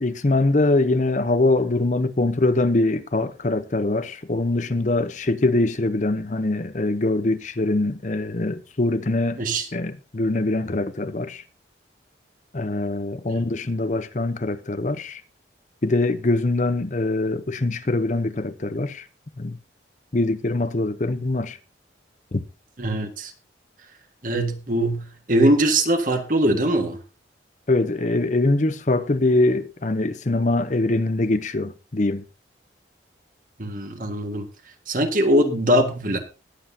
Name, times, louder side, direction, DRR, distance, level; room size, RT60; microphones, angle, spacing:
voice 1, 0.0-9.4 9.7-11.4 12.5-15.2 15.8-19.1 19.4-19.6 20.1-21.6 22.3-22.4 27.7-32.2, left 2 dB, 40° left, 0.7 m, -23 dB
voice 2, 22.8-23.3 24.2-27.0 33.6-34.5 34.9-36.2, right 1 dB, 45° right, 1.7 m, -21 dB
20.0 x 7.9 x 2.8 m
head